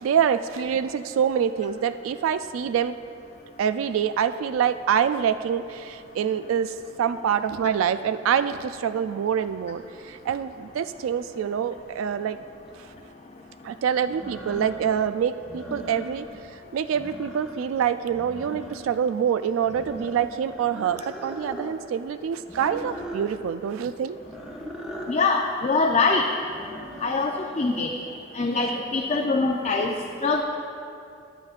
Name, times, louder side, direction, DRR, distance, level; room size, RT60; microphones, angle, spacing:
voice 1, 0.0-3.0 3.6-12.4 12.8-12.9 13.6-16.3 16.7-24.2, right 8 dB, 85° right, 12 dB, 0.3 m, -26 dB
sound 1, 12.7-12.8 14.0-15.0 15.4-16.4 16.8-17.8 18.1-19.1 19.6-21.8 22.5-23.3 24.1-25.2 26.4-27.1, equal, 5° right, 0.8 m, -39 dB
voice 2, 25.1-26.2 27.0-27.9 28.3-29.9 30.2-30.4, left 3 dB, 35° left, 1 dB, 0.5 m, -23 dB
20.5 x 7.0 x 2.4 m, 2.5 s
head